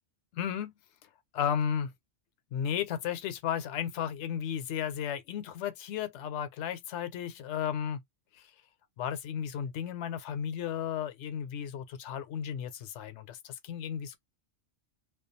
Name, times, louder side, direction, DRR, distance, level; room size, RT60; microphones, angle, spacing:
voice 1, 0.3-0.7 1.3-1.9 2.5-8.0 8.3-8.5 9.0-14.2, left 8 dB, 75° left, 0.9 m, -34 dB
2.3 x 2.3 x 2.5 m
omnidirectional pair, 1.2 m